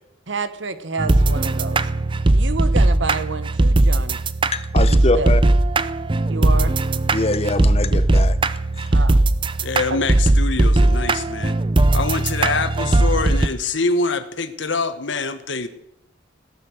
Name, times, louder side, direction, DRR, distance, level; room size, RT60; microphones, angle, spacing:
voice 1, 0.3-1.8 2.3-4.2 4.9-5.3 6.3-6.8 8.9-9.2 9.9-10.0, right 4 dB, 75° right, 12 dB, 1.2 m, -29 dB
sound 1, 1.0-13.5, right 2 dB, 25° right, 0.5 m, -18 dB
voice 2, 4.5-5.4 7.1-8.4 8.8-9.0, left 2 dB, 30° left, 12 dB, 0.9 m, -23 dB
voice 3, 9.6-11.6 11.9-15.7, left 3 dB, 70° left, 11 dB, 1.3 m, -24 dB
17.5 x 10.0 x 6.5 m, 0.83 s
head